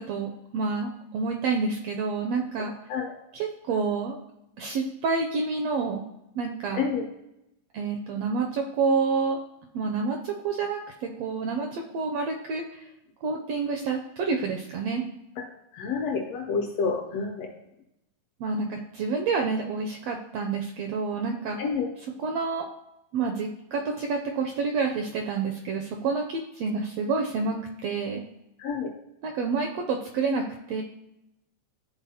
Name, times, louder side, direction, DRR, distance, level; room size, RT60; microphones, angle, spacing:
voice 1, 0.0-2.7 3.3-4.2 4.6-6.0 6.3-6.9 7.7-9.4 9.7-12.9 13.2-15.0 18.4-21.6 22.2-22.7 23.1-28.2 29.2-30.8, right 4 dB, 85° right, 3 dB, 1.5 m, -28 dB
voice 2, 15.7-17.5 21.6-21.9 28.6-28.9, left 5 dB, 75° left, 2 dB, 1.5 m, -28 dB
10.0 x 3.8 x 2.8 m, 0.85 s
omnidirectional pair, 3.4 m